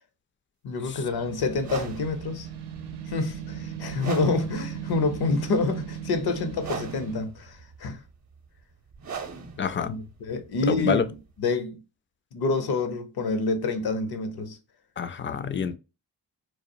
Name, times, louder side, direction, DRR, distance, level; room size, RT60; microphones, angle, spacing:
voice 1, 0.6-2.5 3.1-8.0 9.8-11.0 11.4-11.8 12.3-14.6, left 3 dB, 70° left, 0.7 m, -27 dB
sound 1, 0.8-7.2, right 8 dB, 80° right, 0.6 m, -38 dB
sound 2, 1.5-11.4, right 6 dB, 45° right, 0.7 m, -41 dB
voice 2, 9.6-9.9 10.7-11.0 15.0-15.8, left 6 dB, 30° left, 0.4 m, -27 dB
2.3 x 2.0 x 2.6 m
cardioid pair, 60°, 40 cm